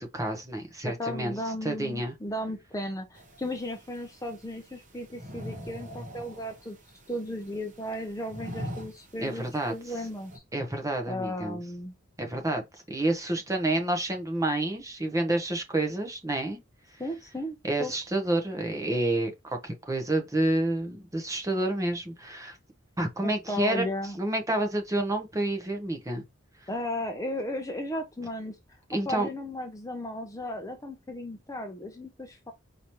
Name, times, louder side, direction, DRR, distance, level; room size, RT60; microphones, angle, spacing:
voice 1, 0.0-1.4 1.6-2.2 9.2-9.7 10.5-11.6 12.2-16.6 17.6-22.6 23.0-23.8 24.2-26.2 28.9-29.3, right 1 dB, 15° right, 0.8 m, -29 dB
voice 2, 0.8-6.8 7.1-9.4 9.7-10.3 11.1-11.9 17.0-17.9 23.2-24.2 26.7-28.5 28.9-32.5, left 1 dB, 15° left, 0.6 m, -35 dB
sound 1, 3.1-10.4, equal, 40° right, 1.1 m, -44 dB
4.9 x 2.8 x 3.0 m
head